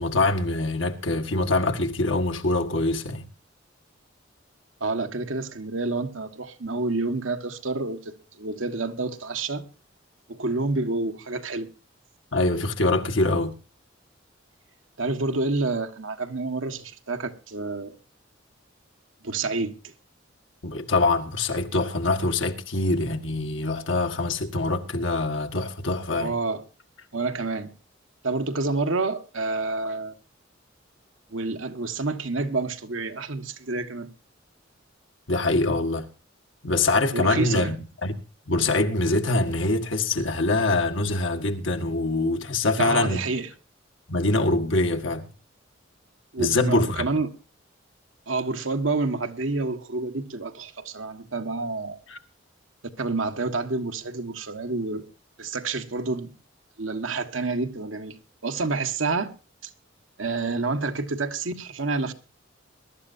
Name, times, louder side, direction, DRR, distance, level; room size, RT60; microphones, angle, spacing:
voice 1, 0.0-3.3 12.3-13.5 20.6-26.3 35.3-36.1 36.6-37.7 38.0-38.1 38.5-43.2 44.1-45.3 46.4-47.1 52.1-52.2, left 2 dB, 70° left, 1.7 m, -24 dB
voice 2, 4.8-9.7 10.3-11.7 15.0-17.9 19.2-19.9 26.2-26.6 27.1-27.7 28.2-30.1 31.3-34.1 37.1-37.7 42.8-43.5 46.3-47.3 48.3-52.0 53.0-55.1 55.4-56.3 56.8-58.2 58.4-59.3 59.6-59.7 60.2-62.1, right 3 dB, 85° right, 1.6 m, -28 dB
22.0 x 12.5 x 2.7 m
head